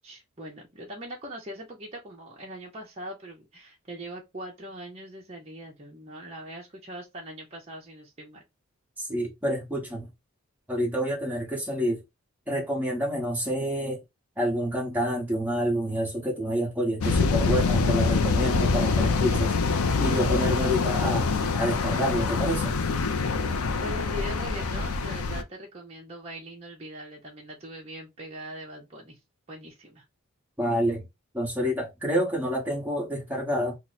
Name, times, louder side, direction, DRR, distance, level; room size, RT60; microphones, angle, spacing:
voice 1, 0.0-8.4 23.8-29.2 29.5-30.0, right 1 dB, 30° right, 0.7 m, -41 dB
voice 2, 9.0-10.1 10.7-12.0 12.5-14.0 14.4-19.5 20.0-22.8 30.6-31.1 31.3-33.8, equal, 10° right, 1.2 m, -28 dB
sound 1, 17.0-25.4, left 4 dB, 80° left, 0.5 m, -25 dB
3.0 x 2.1 x 3.9 m
head